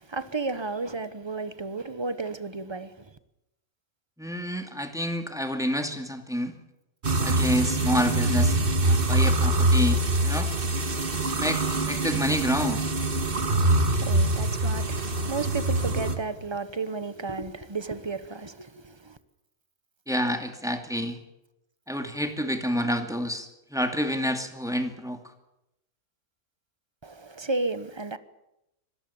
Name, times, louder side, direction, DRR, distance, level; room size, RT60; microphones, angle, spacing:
voice 1, 0.0-3.1 14.0-19.2 27.0-28.2, right 3 dB, 20° right, 0.9 m, -33 dB
voice 2, 4.2-6.5 7.2-10.5 11.4-11.6 11.9-12.8 20.1-21.2 21.9-25.2, equal, ahead, 2.3 m, -28 dB
sound 1, 7.0-16.2, right 2 dB, 40° right, 1.8 m, -24 dB
24.5 x 19.0 x 7.1 m
omnidirectional pair, 1.6 m